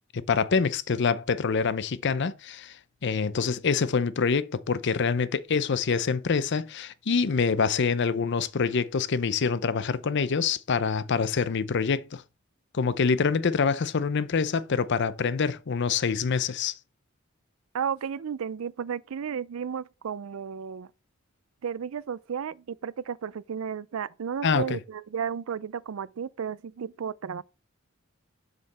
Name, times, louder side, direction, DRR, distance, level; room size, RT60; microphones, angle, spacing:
voice 1, 0.1-2.8 3.0-12.2 12.7-16.7 24.4-24.8, left 5 dB, 60° left, 0.6 m, -26 dB
voice 2, 17.7-20.9 21.6-27.4, right 7 dB, 85° right, 0.4 m, -33 dB
6.8 x 6.5 x 4.2 m
head